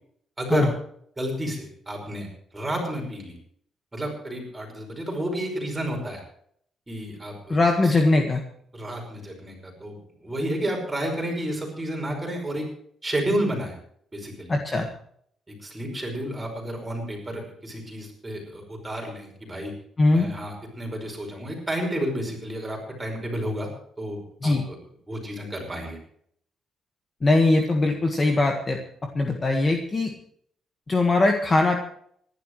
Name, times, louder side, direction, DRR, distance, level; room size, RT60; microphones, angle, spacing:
voice 1, 0.4-0.7 1.2-3.4 3.9-6.2 6.9-7.9 8.7-10.0 10.2-12.6 13.0-13.8 14.1-14.5 15.5-19.7 20.1-23.7 24.0-24.8 25.1-26.0, right 1 dB, 10° right, 1 dB, 5.3 m, -31 dB
voice 2, 7.5-8.4 14.5-14.9 20.0-20.3 24.4-24.6 27.2-28.8 29.1-30.1 30.9-31.8, left 2 dB, 20° left, 3 dB, 1.6 m, -21 dB
25.5 x 11.5 x 3.2 m, 0.64 s
cardioid pair, 175°, 0 cm